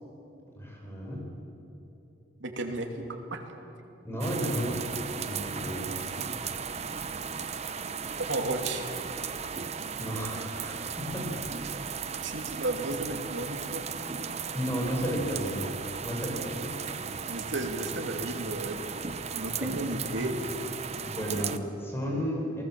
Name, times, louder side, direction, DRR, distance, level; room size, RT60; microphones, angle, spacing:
voice 1, 0.6-1.2 4.0-4.8 5.1-6.0 10.0-11.5 14.5-15.7 16.0-16.8 19.6-19.7 20.2-20.3 21.0-22.6, equal, 15° left, -1 dB, 5.3 m, -33 dB
voice 2, 2.4-3.5 8.3-8.9 12.2-13.8 14.8-14.9 15.3-15.4 17.2-18.8 19.3-20.4, right 2 dB, 80° right, 3 dB, 2.7 m, -33 dB
sound 1, 4.2-21.6, right 6 dB, 35° right, 0.8 m, -36 dB
28.0 x 19.5 x 7.6 m, 2.9 s
head